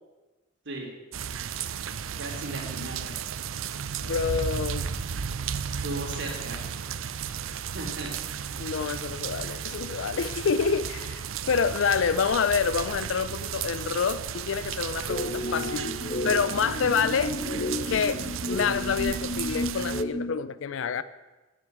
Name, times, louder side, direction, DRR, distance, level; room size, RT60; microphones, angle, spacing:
sound 1, 1.1-20.0, right 7 dB, 80° right, 0.6 m, -34 dB
voice 1, 2.2-3.3 5.8-6.6 7.7-8.1, right 1 dB, 60° right, 3.1 m, -36 dB
voice 2, 4.0-4.9 8.6-15.9 16.2-17.4 17.8-21.0, left 6 dB, 70° left, 0.4 m, -27 dB
sound 2, 15.1-20.4, left 1 dB, 45° left, 1.3 m, -32 dB
11.0 x 7.6 x 7.9 m
head